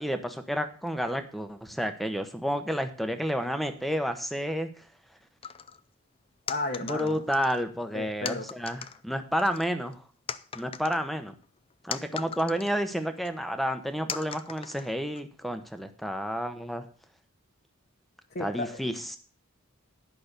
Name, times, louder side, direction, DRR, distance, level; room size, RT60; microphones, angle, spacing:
voice 1, 0.0-4.7 6.9-10.0 10.5-11.3 11.8-16.9 18.4-19.2, equal, ahead, 8 dB, 0.9 m, -30 dB
sound 1, 5.4-5.8 6.5-7.6 8.3-9.0 9.4-9.9 10.3-12.8 13.2-13.3 14.1-15.2, left 7 dB, 25° left, 0.4 m, -39 dB
voice 2, 6.5-7.2 7.9-8.5 12.1-12.2 18.3-18.8, left 2 dB, 45° left, 2 dB, 1.0 m, -33 dB
11.0 x 5.8 x 6.6 m, 0.41 s
head